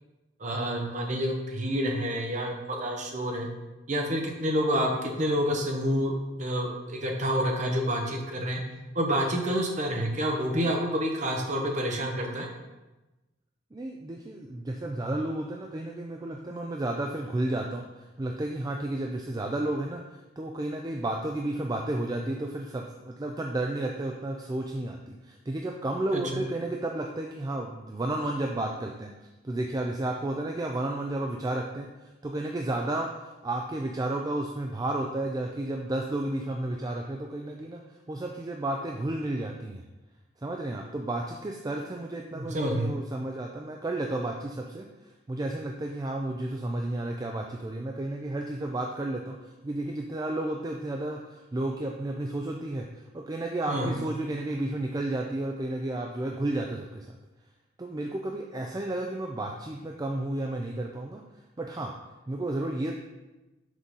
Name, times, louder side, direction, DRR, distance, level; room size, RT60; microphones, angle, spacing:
voice 1, 0.4-3.5 3.9-8.6 8.9-12.5 26.1-26.4 42.3-42.9 53.7-53.9, equal, 35° right, 1 dB, 0.9 m, -28 dB
voice 2, 13.7-37.8 38.1-39.8 40.4-57.2 57.8-61.2 61.6-61.9 62.3-62.9, right 1 dB, 20° right, 1 dB, 0.3 m, -32 dB
6.2 x 3.8 x 5.4 m, 1.1 s
head